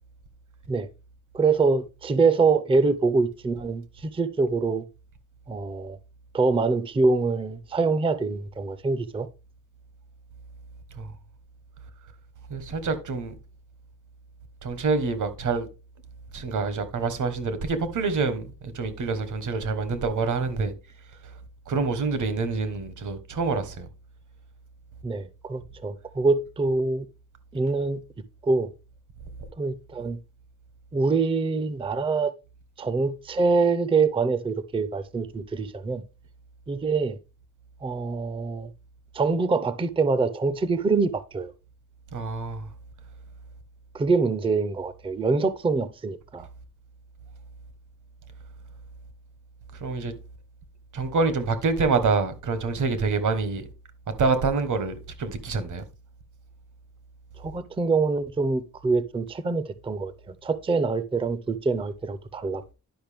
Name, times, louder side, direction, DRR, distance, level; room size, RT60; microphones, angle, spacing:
voice 1, 1.3-4.8 5.5-6.0 6.3-9.3 25.0-27.1 27.5-28.0 28.4-28.7 29.6-30.2 30.9-32.3 32.8-36.0 36.7-37.2 37.8-38.7 39.1-41.5 43.9-46.5 57.4-62.7, right 4 dB, 15° right, 0.4 m, -25 dB
voice 2, 12.5-13.3 14.6-15.7 16.3-18.5 18.7-20.7 21.7-23.9 42.1-42.7 49.8-50.1 50.9-53.6 54.2-55.8, right 4 dB, 70° right, 1.2 m, -26 dB
10.5 x 5.3 x 3.4 m
wide cardioid pair, 150°, 32 cm